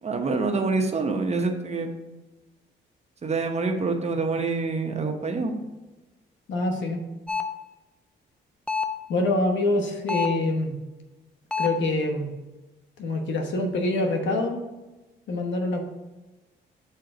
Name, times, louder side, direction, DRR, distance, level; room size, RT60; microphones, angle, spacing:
voice 1, 0.0-1.9 3.2-5.5, right 3 dB, 35° right, 4 dB, 0.9 m, -26 dB
voice 2, 6.5-7.0 9.1-10.7 11.6-12.3 13.0-14.6 15.3-15.8, left 2 dB, 70° left, 3 dB, 1.1 m, -25 dB
sound 1, 7.3-7.6 8.7-9.0 10.1-10.5 11.5-11.9, left 5 dB, 5° left, 0.4 m, -27 dB
6.6 x 3.8 x 4.9 m, 1.1 s
cardioid pair, 90°, 20 cm